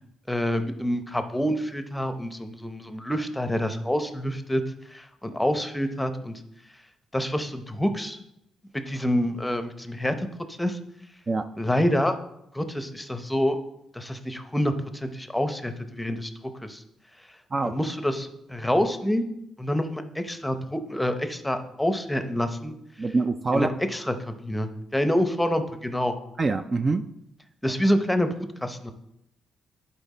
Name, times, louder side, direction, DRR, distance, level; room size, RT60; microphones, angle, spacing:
voice 1, 0.3-4.6 4.9-6.4 7.1-8.2 8.7-10.8 11.6-12.2 12.5-13.6 13.9-16.3 16.6-16.8 17.6-19.2 19.6-22.7 23.0-23.2 23.5-26.1 27.6-28.9, equal, 5° left, 8 dB, 0.7 m, -27 dB
voice 2, 23.0-23.7 26.4-27.0, right 3 dB, 30° right, 8 dB, 0.4 m, -24 dB
10.5 x 4.4 x 4.2 m, 0.80 s
cardioid pair, 90°, 0 cm